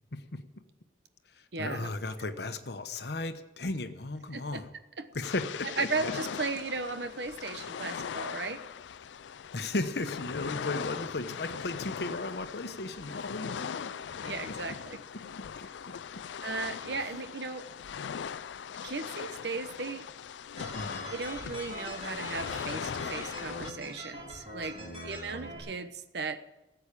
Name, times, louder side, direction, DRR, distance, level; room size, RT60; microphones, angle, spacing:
voice 1, 0.1-0.4 1.3-4.7 5.1-6.1 9.5-14.3 15.6-16.2 17.0-17.1 20.7-21.1 24.8-25.4, left 2 dB, 65° left, 9 dB, 1.0 m, -36 dB
voice 2, 1.5-1.9 2.2-2.3 4.3-4.6 5.0-5.1 5.6-8.6 9.6-9.7 14.2-15.0 16.4-17.7 18.8-20.1 21.1-26.5, right 3 dB, 70° right, 10 dB, 1.0 m, -36 dB
sound 1, 5.2-23.7, left 7 dB, 85° left, 0.4 m, -40 dB
sound 2, 20.6-25.6, right 1 dB, 35° right, 4.4 m, -43 dB
14.5 x 8.1 x 8.4 m, 1.0 s
head